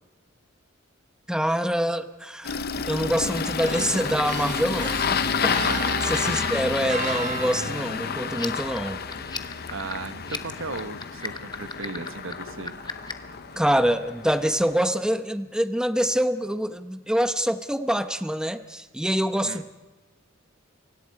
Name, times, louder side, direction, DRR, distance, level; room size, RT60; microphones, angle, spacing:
voice 1, 1.3-2.6 2.9-5.6 6.0-9.0 13.6-19.7, equal, 5° right, 9 dB, 0.9 m, -25 dB
Engine starting, 2.4-14.9, left 6 dB, 50° left, 0.8 m, -30 dB
sound 1, 3.6-13.9, right 4 dB, 40° right, 1.1 m, -38 dB
voice 2, 5.5-5.8 6.2-6.4 9.7-12.7 19.4-19.6, right 3 dB, 75° right, 10 dB, 1.4 m, -36 dB
sound 2, 8.3-13.3, left 4 dB, 20° left, 1.3 m, -36 dB
29.0 x 24.5 x 4.9 m, 1.2 s
head